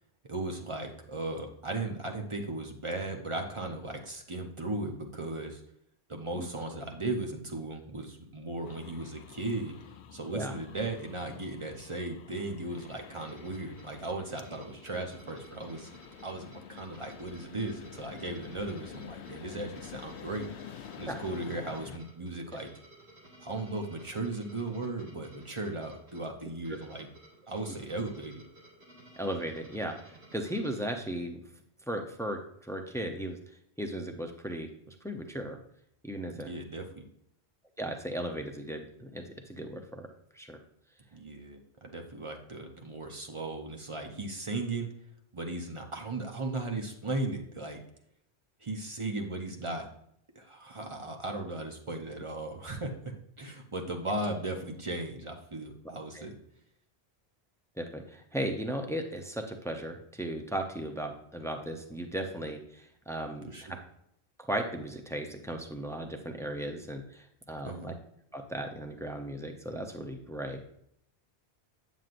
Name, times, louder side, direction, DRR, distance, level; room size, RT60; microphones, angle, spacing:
voice 1, 0.2-5.6 6.1-9.7 10.1-15.9 16.2-20.5 21.0-22.7 23.4-27.1 27.5-28.4 36.3-37.1 41.1-44.9 45.3-47.8 48.6-49.9 50.4-56.4 63.5-63.8 67.6-67.9, right 2 dB, 35° right, 2 dB, 0.7 m, -37 dB
sound 1, 8.6-22.0, left 9 dB, 85° left, 0.9 m, -48 dB
sound 2, 13.2-30.8, right 1 dB, 80° right, 2.2 m, -56 dB
voice 2, 29.2-31.4 31.9-33.4 33.8-35.6 36.0-36.5 37.8-40.1 40.3-40.6 56.1-56.3 57.8-63.5 64.4-67.9 68.3-70.6, right 1 dB, 5° left, 4 dB, 0.4 m, -36 dB
7.8 x 7.4 x 2.5 m, 0.72 s
omnidirectional pair, 1.1 m